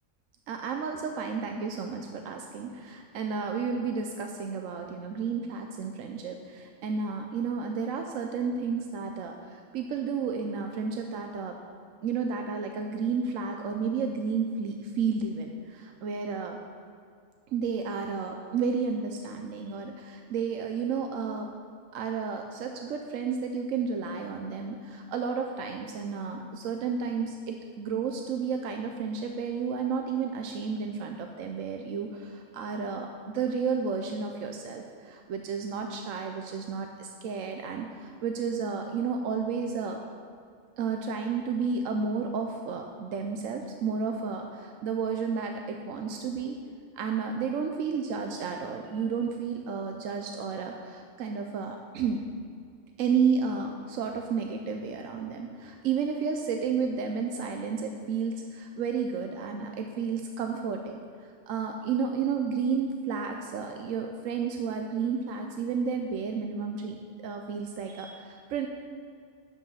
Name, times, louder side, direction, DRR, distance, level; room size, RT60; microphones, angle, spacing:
voice 1, 0.5-11.6 12.0-16.6 17.5-21.5 21.9-40.0 40.8-46.6 47.0-52.2 53.0-61.0 61.5-67.0 67.2-68.7, right 5 dB, 90° right, 3 dB, 1.1 m, -32 dB
10.0 x 8.1 x 5.6 m, 2.3 s
omnidirectional pair, 1.3 m